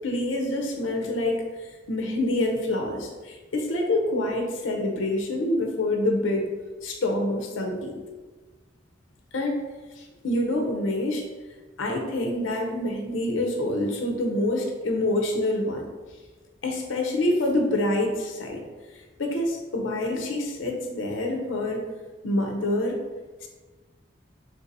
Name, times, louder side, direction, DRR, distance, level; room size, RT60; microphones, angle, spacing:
voice 1, 0.0-1.4 1.9-6.5 6.8-8.0 9.3-9.6 10.0-11.2 11.8-15.9 16.6-18.6 19.2-21.8 22.2-23.0 23.4-23.5, left 1 dB, 80° left, 2 dB, 0.6 m, -26 dB
3.6 x 2.7 x 3.8 m, 1.3 s
head